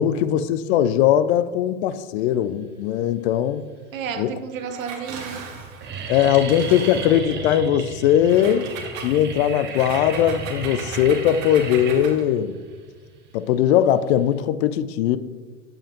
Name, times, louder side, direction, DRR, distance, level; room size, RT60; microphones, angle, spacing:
voice 1, 0.0-3.6 4.2-4.3 6.1-8.7 9.0-12.5 13.3-15.2, left 10 dB, 55° left, 0.5 m, -20 dB
sound 1, 3.2-3.8 4.5-4.6 4.8-5.2 5.5-14.4, right 5 dB, 25° right, 0.9 m, -34 dB
voice 2, 3.9-5.6, right 6 dB, 85° right, 0.8 m, -32 dB
Engine, 4.7-7.4 8.2-12.3, right 5 dB, 45° right, 1.3 m, -39 dB
7.3 x 5.0 x 2.9 m
hypercardioid pair, 105°, 39 cm